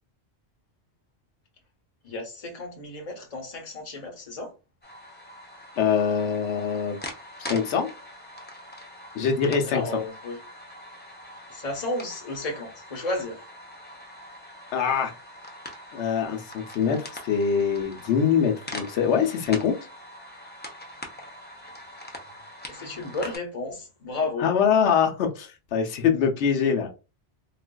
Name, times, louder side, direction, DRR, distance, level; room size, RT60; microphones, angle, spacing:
voice 1, 2.0-4.5 9.6-10.4 11.5-13.4 22.7-24.5, left 2 dB, 35° left, 0.9 m, -33 dB
sound 1, 4.8-23.4, left 1 dB, 15° left, 0.3 m, -43 dB
voice 2, 5.8-7.0 7.4-7.9 9.1-9.8 14.7-15.1 15.9-19.8 24.4-26.9, left 7 dB, 80° left, 0.9 m, -23 dB
3.8 x 2.4 x 2.2 m
omnidirectional pair, 1.1 m